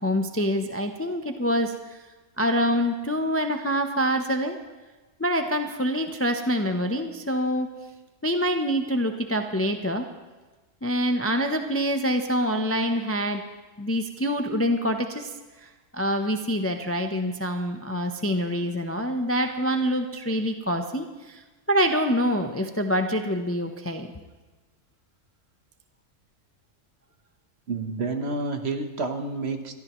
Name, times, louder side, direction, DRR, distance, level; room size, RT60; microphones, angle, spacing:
voice 1, 0.0-2.0 2.4-4.6 5.2-7.7 8.2-10.0 10.8-13.4 13.8-15.3 15.6-24.1, equal, 15° left, 6 dB, 0.5 m, -26 dB
voice 2, 27.7-29.7, right 3 dB, 55° right, 6 dB, 1.3 m, -29 dB
22.5 x 13.0 x 3.0 m, 1.2 s
omnidirectional pair, 1.3 m